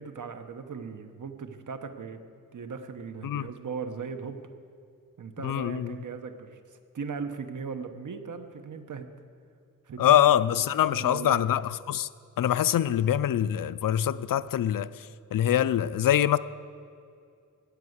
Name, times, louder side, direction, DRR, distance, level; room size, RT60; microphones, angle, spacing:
voice 1, 0.0-4.4 5.2-6.6 6.9-9.1 9.9-10.4 10.8-11.4, right 5 dB, 65° right, 1.0 m, -38 dB
voice 2, 5.4-6.0 10.0-12.1 12.4-14.9 15.3-16.4, left 11 dB, 75° left, 0.5 m, -24 dB
13.0 x 8.2 x 8.0 m
wide cardioid pair, 105°, 33 cm